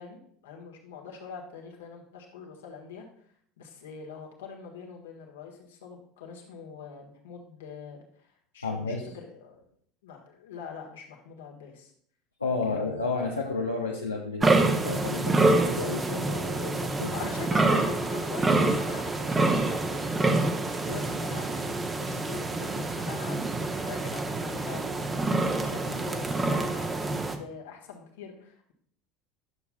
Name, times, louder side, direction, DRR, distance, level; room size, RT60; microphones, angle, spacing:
voice 1, 0.0-3.3 3.6-9.7 10.0-11.9 12.7-13.0 17.1-25.0 25.3-28.7, left 6 dB, 70° left, 0 dB, 1.4 m, -44 dB
voice 2, 8.6-9.1 12.4-17.3, left 3 dB, 90° left, -2 dB, 0.6 m, -32 dB
sound 1, 14.4-27.3, right 2 dB, 20° right, 0.8 m, -27 dB
10.5 x 6.9 x 2.3 m, 0.62 s
figure-of-eight pair, 70°, 0 cm